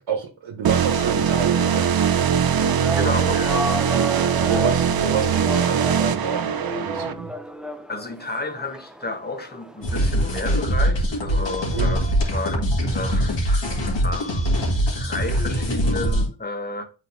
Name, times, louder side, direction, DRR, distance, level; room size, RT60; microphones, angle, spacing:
voice 1, 0.1-2.1 3.9-4.1 4.4-7.3 11.7-12.0, right 6 dB, 85° right, 1.2 m, -28 dB
sound 1, 0.6-7.1, right 7 dB, 50° right, 0.5 m, -21 dB
sound 2, 2.6-10.5, right 1 dB, ahead, 0.4 m, -33 dB
voice 2, 2.9-3.7 7.9-16.9, left 2 dB, 20° left, 1.0 m, -32 dB
sound 3, 9.8-16.3, equal, 70° left, 1.9 m, -22 dB
9.2 x 4.2 x 2.7 m
wide cardioid pair, 105°, 46 cm